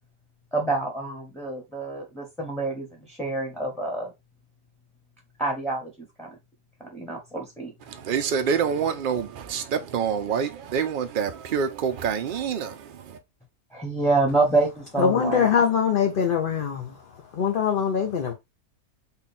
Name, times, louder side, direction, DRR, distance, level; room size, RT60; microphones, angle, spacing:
voice 1, 0.5-4.1 5.4-5.9 6.2-6.3 6.8-7.7 13.7-15.5, right 3 dB, ahead, 0.9 m, -27 dB
voice 2, 7.9-13.2, right 7 dB, 55° right, 0.6 m, -27 dB
voice 3, 15.0-17.0 17.3-18.3, left 7 dB, 50° left, 0.7 m, -23 dB
3.8 x 2.4 x 4.1 m
omnidirectional pair, 1.5 m